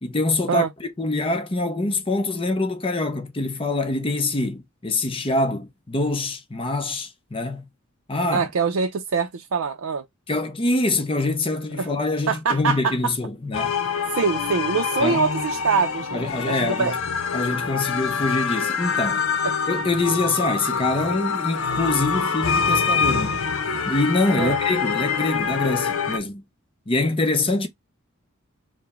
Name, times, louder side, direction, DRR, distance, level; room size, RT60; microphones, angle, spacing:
voice 1, 0.0-7.6 8.1-8.5 10.3-13.7 15.0-15.2 16.1-16.9 17.3-19.2 19.7-23.4 23.9-26.4 26.9-27.7, left 2 dB, 25° left, 0.7 m, -25 dB
voice 2, 8.3-10.1 11.8-11.9 12.3-13.1 14.1-16.9 24.4-24.6, right 5 dB, 75° right, 0.5 m, -24 dB
sound 1, 13.5-26.2, left 5 dB, 85° left, 0.7 m, -25 dB
4.8 x 2.1 x 3.5 m
head